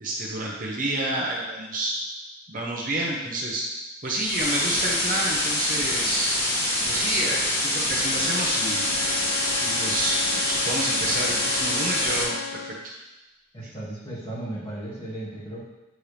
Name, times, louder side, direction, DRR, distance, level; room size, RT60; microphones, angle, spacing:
voice 1, 0.0-1.9 2.5-3.6 4.0-6.3 6.8-8.9 9.6-12.9, right 1 dB, 40° right, -3 dB, 0.9 m, -29 dB
sound 1, 4.1-12.2, left 1 dB, 65° left, 2.4 m, -25 dB
Wind instrument woodwind instrument, 7.9-12.9, left 8 dB, 80° left, 0.3 m, -37 dB
voice 2, 13.5-15.6, right 1 dB, 25° left, -9 dB, 2.3 m, -35 dB
8.9 x 4.4 x 3.4 m, 1.1 s
head